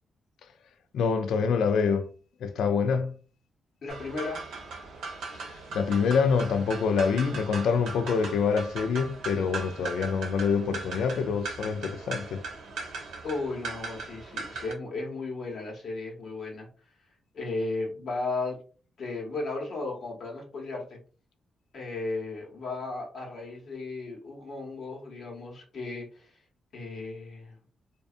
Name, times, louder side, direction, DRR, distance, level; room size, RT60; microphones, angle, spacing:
voice 1, 0.9-2.1 2.4-3.2 5.3-12.4, left 5 dB, 85° left, 0.3 m, -26 dB
voice 2, 3.8-4.4 13.2-16.7 17.3-18.6 19.0-21.0 21.7-26.3 26.7-27.6, left 3 dB, 65° left, 0.9 m, -35 dB
sound 1, 3.9-14.7, right 4 dB, 85° right, 0.7 m, -39 dB
2.6 x 2.2 x 2.4 m
cardioid pair, 75°, 0 cm